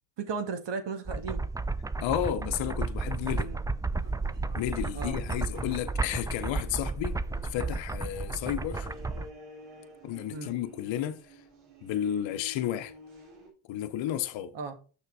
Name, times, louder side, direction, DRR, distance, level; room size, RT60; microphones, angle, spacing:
voice 1, 0.2-1.5 3.3-3.6 4.9-5.2 10.3-10.5 14.5-14.8, right 5 dB, 55° right, 1.9 m, -35 dB
sound 1, 1.1-9.3, right 3 dB, 10° right, 0.4 m, -33 dB
voice 2, 2.0-3.5 4.5-7.1 7.5-8.9 10.0-11.2 11.8-12.9 13.7-14.5, left 11 dB, 65° left, 0.9 m, -32 dB
sound 2, 3.9-9.1, right 1 dB, 40° right, 2.9 m, -53 dB
sound 3, 8.4-13.5, equal, 80° right, 3.0 m, -49 dB
6.5 x 5.9 x 3.9 m
supercardioid pair, 65°, 49 cm